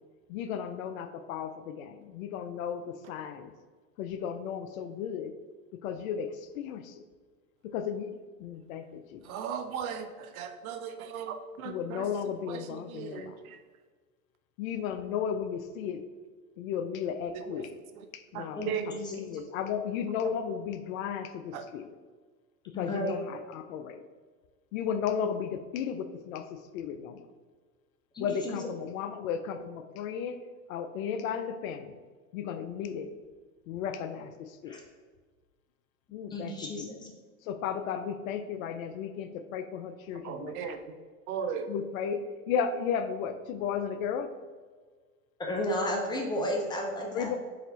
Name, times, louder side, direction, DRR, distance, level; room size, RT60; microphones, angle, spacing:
voice 1, 0.3-3.5 4.0-5.3 5.8-6.3 6.6-6.8 7.7-8.1 8.4-9.2 11.7-13.3 14.6-16.0 16.6-17.7 18.3-18.6 19.3-21.8 22.8-24.0 24.7-27.2 28.2-30.4 30.7-31.9 32.3-33.1 33.7-34.3 34.6-34.8 36.1-36.5 36.8-36.9 37.5-40.5 41.7-42.2 42.5-44.3 47.1-47.4, left 7 dB, 65° left, 9 dB, 0.5 m, -34 dB
voice 2, 9.2-13.6 17.3-17.7 17.9-18.1 18.3-18.9 20.1-20.3 21.5-21.7 40.1-40.9 41.3-41.7, right 7 dB, 70° right, 8 dB, 0.6 m, -38 dB
voice 3, 22.7-23.1 28.1-28.6 34.7-34.8 36.3-37.1 45.4-47.4, left 1 dB, 10° left, 0 dB, 0.4 m, -32 dB
4.2 x 2.5 x 3.9 m, 1.4 s
hypercardioid pair, 110°, 45 cm